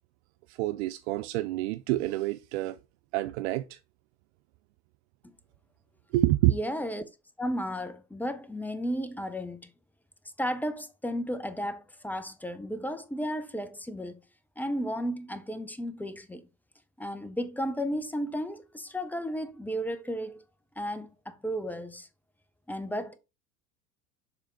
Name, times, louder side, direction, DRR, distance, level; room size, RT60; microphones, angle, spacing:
voice 1, 0.5-2.8 3.1-3.8 6.1-6.6, right 17 dB, 50° right, 0.4 m, -27 dB
voice 2, 6.5-7.0 7.4-9.7 10.4-14.2 14.6-16.5 17.0-20.4 20.8-22.1 22.7-23.2, equal, 5° left, 0.5 m, -34 dB
6.9 x 3.5 x 4.2 m
figure-of-eight pair, 75°, 43 cm